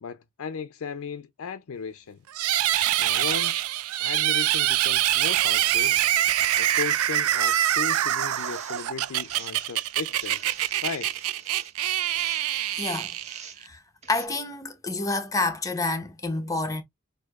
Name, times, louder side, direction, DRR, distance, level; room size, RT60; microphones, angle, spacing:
voice 1, 0.0-2.2 3.0-3.7 4.0-6.0 6.6-10.4 10.8-11.1, left 6 dB, 70° left, 0.4 m, -36 dB
sound 1, 2.3-13.7, right 12 dB, 85° right, 0.4 m, -25 dB
sound 2, 5.2-6.8 7.2-7.9 8.2-8.9 9.2-9.6 10.1-11.7 12.1-12.4 13.1-13.6 14.0-14.3, right 5 dB, 30° right, 1.0 m, -47 dB
voice 2, 12.8-13.1 13.6-13.8 14.1-16.8, left 2 dB, 15° left, 0.8 m, -28 dB
6.1 x 2.7 x 2.4 m
head